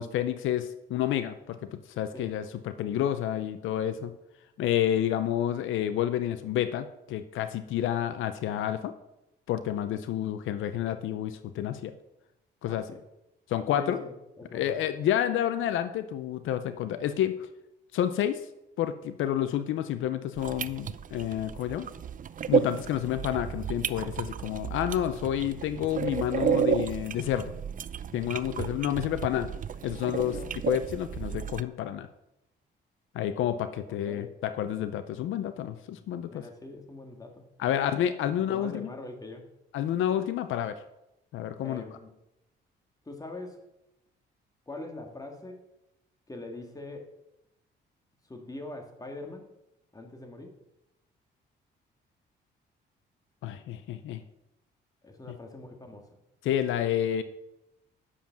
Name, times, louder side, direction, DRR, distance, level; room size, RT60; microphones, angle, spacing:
voice 1, 0.0-1.6 2.0-4.1 4.6-8.9 9.5-11.9 12.6-12.9 13.5-14.0 14.5-17.4 17.9-18.4 18.8-21.9 22.5-27.5 28.1-29.5 29.8-30.3 30.7-32.1 33.1-36.4 37.6-38.9 39.7-40.8 41.3-41.8 53.4-54.2 56.4-57.2, left 11 dB, 80° left, 11 dB, 0.6 m, -29 dB
voice 2, 12.6-13.0 13.8-14.8 28.6-28.7 30.2-30.5 34.0-34.3 35.9-36.0 36.3-37.9 38.5-39.4 41.6-42.1 43.1-43.6 44.7-45.7 46.3-47.1 48.3-49.5 49.9-50.5 55.0-56.1, left 2 dB, 20° left, 3 dB, 2.1 m, -43 dB
sound 1, 20.4-31.6, right 8 dB, 40° right, 0.5 m, -32 dB
10.0 x 7.2 x 6.0 m, 0.90 s
cardioid pair, 90°, 20 cm